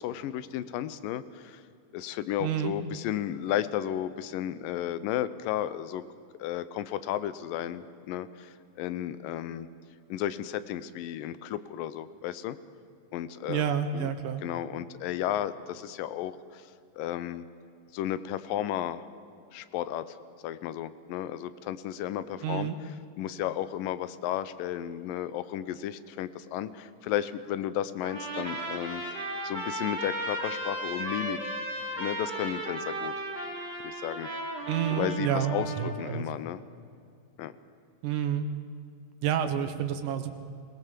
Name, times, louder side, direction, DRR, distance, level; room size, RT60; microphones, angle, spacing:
voice 1, 0.0-1.6 1.9-6.0 6.4-9.7 10.1-12.6 13.1-14.1 14.4-17.5 17.9-19.0 19.5-20.2 20.4-22.7 23.2-31.5 32.0-33.1 33.8-34.3 34.9-36.6 37.4-37.5, left 11 dB, 80° left, 14 dB, 2.5 m, -33 dB
voice 2, 2.4-2.7 13.5-14.4 22.4-22.8 34.7-36.3 38.0-38.5 39.2-40.3, right 8 dB, 70° right, 8 dB, 2.8 m, -29 dB
Trumpet, 28.0-35.9, right 1 dB, 30° right, 4.8 m, -35 dB
25.5 x 18.5 x 7.5 m, 2.4 s
omnidirectional pair, 4.0 m